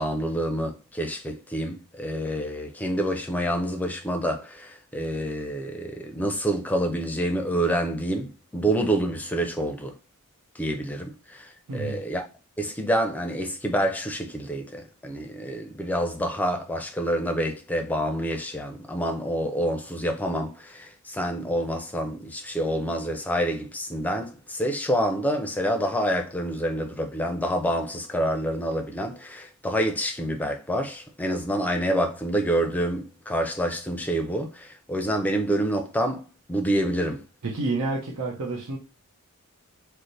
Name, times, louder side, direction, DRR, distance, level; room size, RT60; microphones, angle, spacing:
voice 1, 0.0-9.9 10.6-12.2 12.6-37.2, equal, 5° left, 0.5 m, -27 dB
voice 2, 11.7-12.0 37.4-38.8, right 3 dB, 85° right, 0.7 m, -29 dB
3.2 x 2.1 x 4.0 m
head